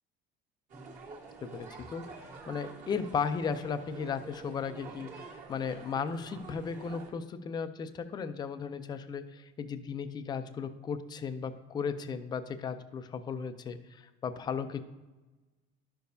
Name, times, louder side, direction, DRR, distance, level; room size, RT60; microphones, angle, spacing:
sound 1, 0.7-7.1, right 4 dB, 40° right, 1.5 m, -48 dB
voice 1, 1.4-2.1 2.5-14.8, left 6 dB, 20° left, 10 dB, 0.4 m, -36 dB
11.5 x 6.7 x 2.7 m, 1.2 s
cardioid pair, 155°, 20 cm